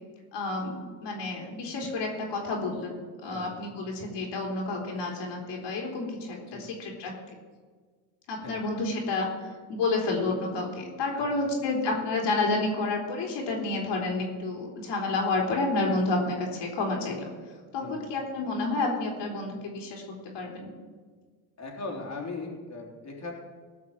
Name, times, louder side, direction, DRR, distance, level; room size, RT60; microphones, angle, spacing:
voice 1, 0.3-2.9 3.2-7.1 8.3-9.3 9.7-17.3 17.7-20.7, left 3 dB, 65° left, -1 dB, 3.5 m, -30 dB
voice 2, 11.1-11.5 17.8-18.1 21.6-23.3, left 3 dB, 35° left, -2 dB, 3.4 m, -39 dB
17.5 x 5.9 x 7.3 m, 1.5 s
supercardioid pair, 85°, 46 cm